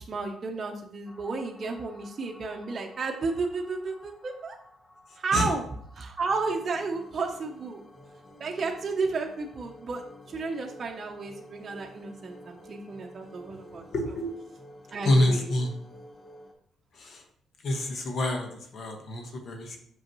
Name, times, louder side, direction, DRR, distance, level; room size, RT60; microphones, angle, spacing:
voice 1, 0.0-4.6 5.2-5.7 6.0-7.8 8.4-10.0 10.3-13.8 14.9-15.5, right 4 dB, 40° right, 1 dB, 0.8 m, -32 dB
sound 1, 1.1-16.5, left 1 dB, 35° left, 1.1 m, -51 dB
voice 2, 5.1-5.5 13.5-14.3 15.0-15.7 16.9-17.2 17.6-19.8, left 1 dB, 60° left, 3 dB, 1.2 m, -28 dB
6.2 x 5.2 x 3.0 m, 0.67 s
cardioid pair, 90°, 0 cm